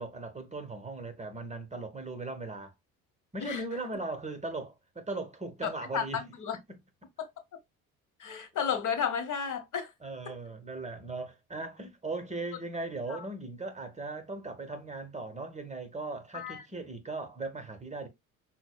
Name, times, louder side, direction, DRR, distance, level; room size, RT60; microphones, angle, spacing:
voice 1, 0.0-2.7 3.3-6.2 10.0-18.1, right 3 dB, 15° right, 0.9 m, -38 dB
voice 2, 5.9-6.6 7.2-7.3 8.2-9.9 13.1-13.2 16.3-16.6, left 7 dB, 45° left, 1.0 m, -32 dB
6.0 x 2.1 x 2.2 m
hypercardioid pair, 65°, 41 cm